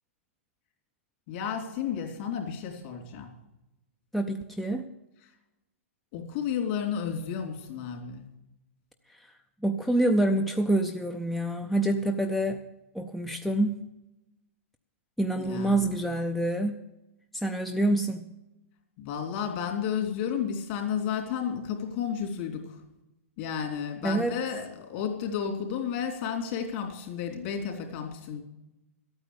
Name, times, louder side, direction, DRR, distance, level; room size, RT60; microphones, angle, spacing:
voice 1, 1.3-3.3 6.1-8.2 15.4-16.0 19.0-22.8 23.4-28.4, left 7 dB, 45° left, 1 dB, 3.2 m, -32 dB
voice 2, 4.1-4.9 9.1-9.3 9.6-12.6 12.9-13.9 15.2-16.9 17.3-18.3 24.0-24.3, right 1 dB, ahead, 6 dB, 0.5 m, -27 dB
13.0 x 9.0 x 7.0 m, 0.96 s
hypercardioid pair, 140°, 8 cm